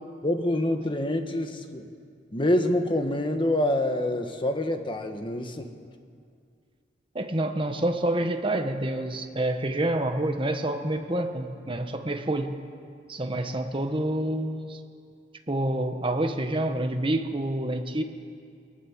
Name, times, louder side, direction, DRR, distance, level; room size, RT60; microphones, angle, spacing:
voice 1, 0.2-1.8 2.3-5.7, left 1 dB, 30° left, 6 dB, 1.5 m, -26 dB
voice 2, 7.1-12.5 13.1-14.8 15.5-18.0, right 1 dB, 30° right, 6 dB, 1.4 m, -28 dB
25.0 x 19.0 x 7.4 m, 2.3 s
head